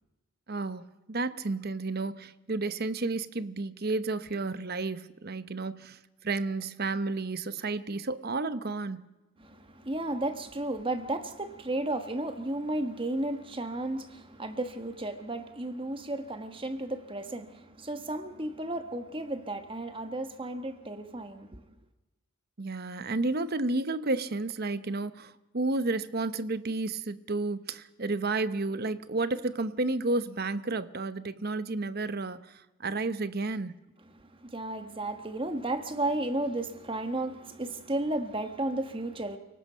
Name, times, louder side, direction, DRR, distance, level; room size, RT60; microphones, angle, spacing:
voice 1, 0.5-6.0 6.2-9.0 22.6-33.7, right 3 dB, 45° right, 0.9 m, -31 dB
voice 2, 9.4-21.6 34.1-39.4, right 2 dB, 25° right, 1.3 m, -33 dB
29.5 x 18.5 x 5.6 m
head